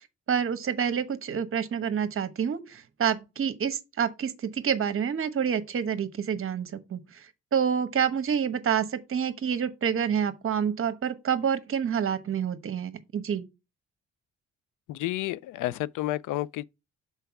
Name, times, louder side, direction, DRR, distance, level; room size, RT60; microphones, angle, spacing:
voice 1, 0.3-7.2 7.5-13.5, right 7 dB, 45° right, 1.1 m, -28 dB
voice 2, 14.9-16.6, left 16 dB, 80° left, 0.5 m, -30 dB
5.7 x 4.5 x 5.8 m
cardioid pair, 90°, 30 cm